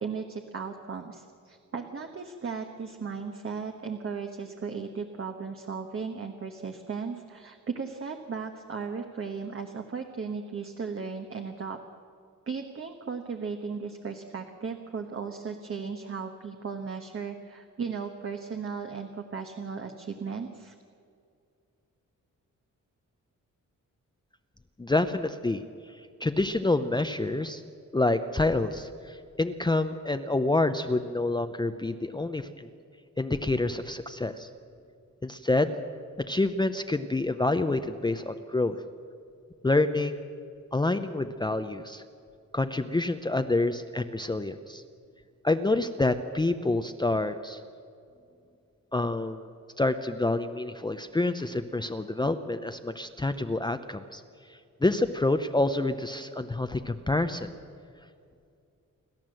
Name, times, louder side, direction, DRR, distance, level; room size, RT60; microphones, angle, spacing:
voice 1, 0.0-11.8 12.5-20.7, right 5 dB, 45° right, 4 dB, 1.3 m, -36 dB
voice 2, 24.8-25.6 26.2-27.6 27.9-32.7 33.2-34.5 35.2-35.7 36.2-38.8 39.6-40.3 40.7-42.0 42.5-44.8 45.4-47.6 48.9-49.5 49.8-54.2 54.8-57.5, left 2 dB, 15° left, 8 dB, 0.6 m, -27 dB
28.5 x 12.5 x 7.7 m, 2.4 s
wide cardioid pair, 130°, 31 cm